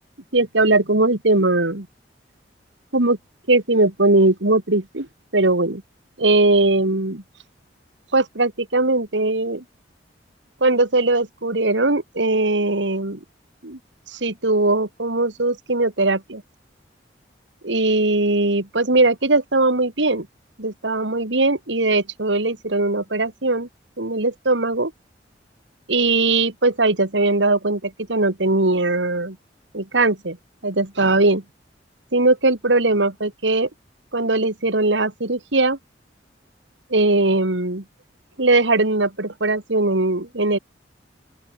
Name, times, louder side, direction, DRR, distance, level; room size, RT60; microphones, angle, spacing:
voice 1, 0.3-1.9 2.9-3.2 3.5-5.1 5.3-5.8 6.2-7.2 8.1-9.6 10.6-13.2 13.6-13.8 14.1-16.4 17.6-20.3 20.6-23.7 24.0-24.9 25.9-29.4 29.7-30.4 30.6-31.4 32.1-33.7 34.1-35.8 36.9-37.8 38.4-40.6, right 2 dB, 80° right, 2.6 m, -20 dB
open air
head